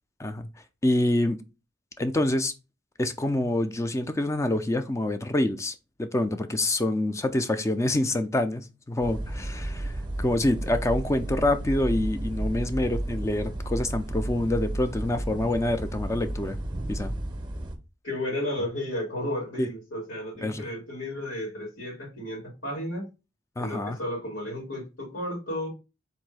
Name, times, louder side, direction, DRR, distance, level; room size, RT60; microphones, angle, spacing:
voice 1, 0.8-1.4 2.0-2.5 3.0-16.6 16.9-17.1 19.6-19.7 20.4-20.6 23.6-24.0, left 1 dB, 15° left, 0.4 m, -26 dB
sound 1, 9.0-17.8, right 1 dB, 25° right, 0.6 m, -32 dB
voice 2, 18.0-23.0 23.6-25.7, left 1 dB, 90° left, 2.8 m, -33 dB
4.0 x 2.6 x 4.6 m
head